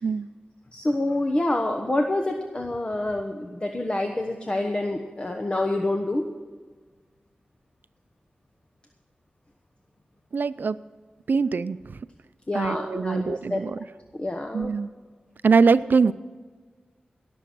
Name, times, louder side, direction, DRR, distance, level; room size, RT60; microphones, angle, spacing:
voice 1, 0.7-6.2 12.5-13.6 14.1-14.7, left 1 dB, 30° left, 4 dB, 1.1 m, -27 dB
voice 2, 10.3-10.8 11.3-12.0 12.5-13.8 14.5-14.9 15.4-16.1, right 5 dB, 75° right, 15 dB, 0.5 m, -22 dB
18.5 x 7.0 x 6.2 m, 1.4 s
wide cardioid pair, 60°, 3 cm